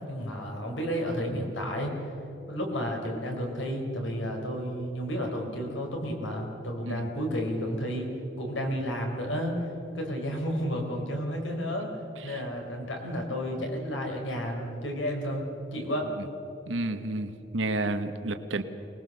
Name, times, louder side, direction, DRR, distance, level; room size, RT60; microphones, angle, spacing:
voice 1, 0.1-2.0 2.5-8.1 8.4-9.6 9.9-11.9 12.2-16.1, equal, 85° left, 2 dB, 4.5 m, -32 dB
voice 2, 16.7-18.6, right 2 dB, 85° right, 8 dB, 1.2 m, -31 dB
24.0 x 20.0 x 6.8 m, 3.0 s
head